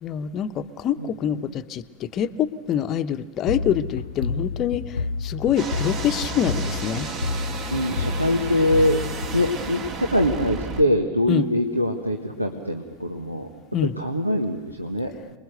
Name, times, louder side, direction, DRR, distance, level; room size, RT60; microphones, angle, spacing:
voice 1, 0.0-7.1 11.3-11.5 13.7-13.9, left 9 dB, 30° left, 9 dB, 0.9 m, -25 dB
sound 1, 3.5-10.1, left 4 dB, 75° left, 0.9 m, -30 dB
sound 2, 5.6-10.8, right 5 dB, 35° right, 2.3 m, -33 dB
voice 2, 7.7-9.0 9.3-13.5 14.0-15.1, left 1 dB, 85° right, 4 dB, 1.5 m, -23 dB
28.0 x 21.5 x 6.7 m, 1.3 s
figure-of-eight pair, 90°, 0 cm